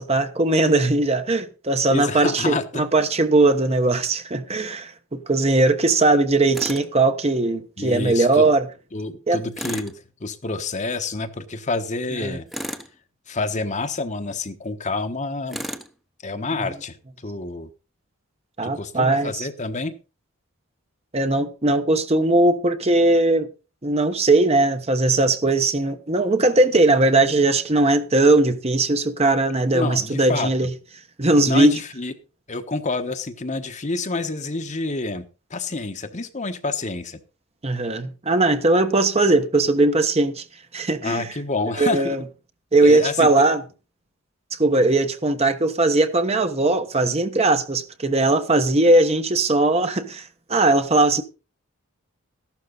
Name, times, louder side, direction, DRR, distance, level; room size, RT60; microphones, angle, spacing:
voice 1, 0.0-8.6 9.3-9.4 12.2-12.4 18.6-19.5 21.1-23.5 23.8-30.7 31.2-31.7 37.6-40.4 40.7-41.3 41.8-42.2 42.7-43.6 44.5-51.2, right 2 dB, 30° right, 1.1 m, -19 dB
voice 2, 1.9-2.8 7.8-8.5 8.9-12.5 13.3-15.6 16.2-17.7 18.6-19.9 29.7-30.7 31.5-32.1 32.5-37.2 41.0-42.2 42.8-43.5, left 3 dB, 35° left, 1.2 m, -28 dB
Tools, 6.5-6.9 9.5-10.0 12.5-13.0 15.5-15.9, equal, ahead, 1.0 m, -32 dB
14.5 x 12.0 x 4.0 m
head